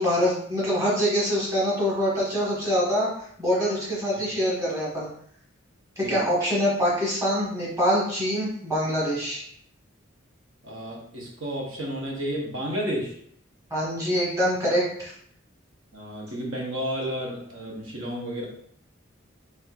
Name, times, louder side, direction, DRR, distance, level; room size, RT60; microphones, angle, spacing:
voice 1, 0.0-3.1 3.4-5.1 6.0-9.4 13.7-15.1, equal, 15° right, -6 dB, 1.2 m, -24 dB
voice 2, 10.6-13.1 15.9-18.5, equal, 75° right, -2 dB, 0.8 m, -31 dB
4.2 x 3.4 x 2.4 m, 0.66 s
head